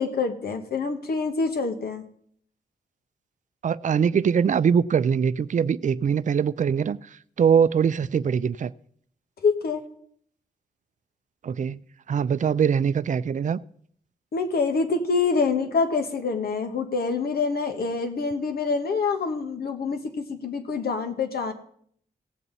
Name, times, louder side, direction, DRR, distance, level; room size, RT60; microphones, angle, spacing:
voice 1, 0.0-2.0 9.4-9.8 14.3-21.5, left 4 dB, 70° left, 1.5 m, -26 dB
voice 2, 3.6-7.0 7.4-8.7 11.4-11.8 12.1-13.6, right 7 dB, 50° right, 0.5 m, -22 dB
17.5 x 7.3 x 4.1 m
cardioid pair, 50°, 17 cm